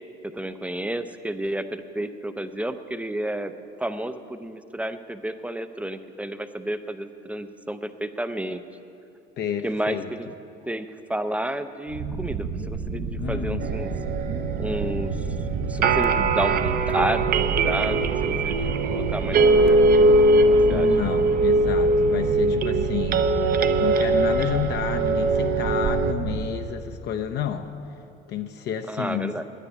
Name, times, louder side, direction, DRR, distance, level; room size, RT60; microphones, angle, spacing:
voice 1, 0.2-3.5 3.8-8.6 9.6-10.3 10.6-13.9 14.5-15.3 15.5-20.9 28.9-29.4, right 1 dB, 5° right, 9 dB, 0.5 m, -31 dB
voice 2, 9.4-10.1 13.2-13.7 20.7-23.3 23.8-27.7 28.3-29.3, left 9 dB, 55° left, 6 dB, 0.6 m, -30 dB
sound 1, 11.9-26.5, right 4 dB, 70° right, 1.0 m, -30 dB
sound 2, 13.6-26.1, right 2 dB, 45° right, 0.6 m, -21 dB
10.0 x 9.6 x 9.3 m, 2.7 s
cardioid pair, 120°, 21 cm